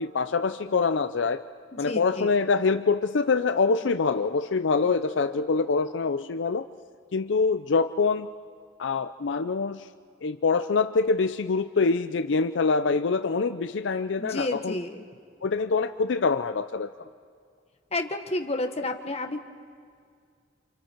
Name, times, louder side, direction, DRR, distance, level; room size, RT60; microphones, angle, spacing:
voice 1, 0.0-1.4 1.8-6.7 7.1-8.3 8.8-9.9 10.2-14.8 15.4-17.1, left 4 dB, 75° left, 10 dB, 0.5 m, -25 dB
voice 2, 1.8-2.3 14.2-15.0 17.9-19.4, left 2 dB, 35° left, 5 dB, 1.3 m, -30 dB
29.0 x 27.0 x 4.6 m, 2.2 s
head